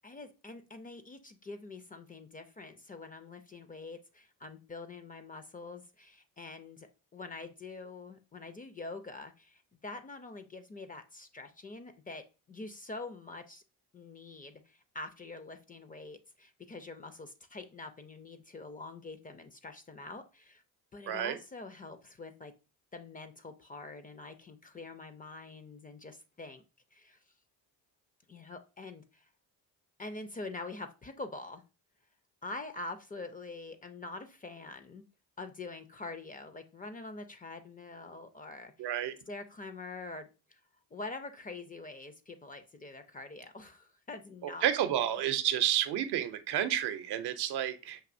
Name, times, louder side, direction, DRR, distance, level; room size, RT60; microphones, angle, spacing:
voice 1, 0.0-13.6 13.9-20.6 20.9-22.5 22.9-26.6 26.9-27.2 28.3-29.3 30.0-31.6 32.4-35.0 35.4-38.9 39.3-40.6 40.9-45.1, left 3 dB, 20° left, 0.4 m, -45 dB
voice 2, 21.1-21.4 38.8-39.2 44.6-48.0, right 11 dB, 70° right, 0.6 m, -30 dB
5.9 x 2.7 x 2.5 m
cardioid pair, 90°, 41 cm